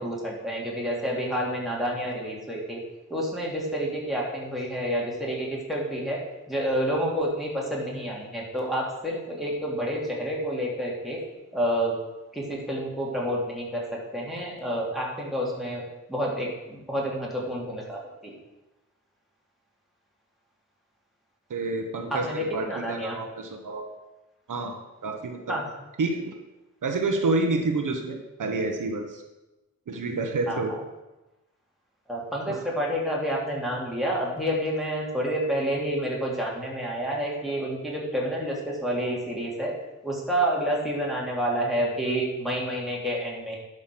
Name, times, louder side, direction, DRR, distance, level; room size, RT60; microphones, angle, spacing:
voice 1, 0.0-2.8 3.1-6.2 6.5-11.2 11.5-11.9 12.3-13.8 14.1-15.8 16.1-18.3 22.1-23.2 25.5-25.6 30.5-30.6 32.1-39.7 40.0-43.6, equal, ahead, -4 dB, 2.8 m, -29 dB
voice 2, 21.5-23.9 24.5-25.6 26.0-26.4 26.8-29.2 29.9-30.8 32.5-32.6, right 3 dB, 75° right, 3 dB, 1.2 m, -29 dB
11.5 x 5.2 x 6.1 m, 1.0 s
wide cardioid pair, 115°, 32 cm